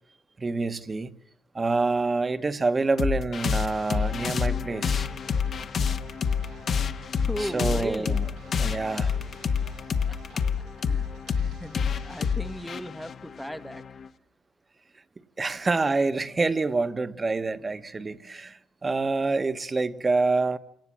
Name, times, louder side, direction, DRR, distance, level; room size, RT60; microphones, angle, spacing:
voice 1, 0.4-1.1 1.5-5.1 7.4-8.3 8.5-9.2 15.4-20.6, right 3 dB, 25° right, 1.3 m, -27 dB
sound 1, 3.0-14.1, left 6 dB, 55° left, 1.3 m, -28 dB
sound 2, 5.0-12.7, right 6 dB, 90° right, 3.6 m, -53 dB
voice 2, 7.2-8.2 10.1-10.4 10.9-11.1 11.4-13.8, equal, ahead, 1.1 m, -36 dB
28.0 x 18.5 x 7.6 m
cardioid pair, 90°, 0 cm